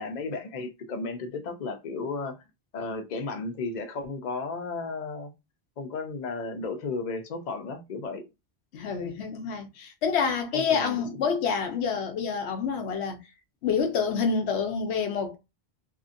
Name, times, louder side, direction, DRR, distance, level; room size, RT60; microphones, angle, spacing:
voice 1, 0.0-2.3 2.7-5.3 5.8-8.2 10.5-11.0, left 3 dB, 50° left, 0.7 m, -34 dB
voice 2, 8.7-13.2 13.6-15.4, left 6 dB, 80° left, 0.9 m, -27 dB
2.8 x 2.6 x 2.5 m
omnidirectional pair, 1.1 m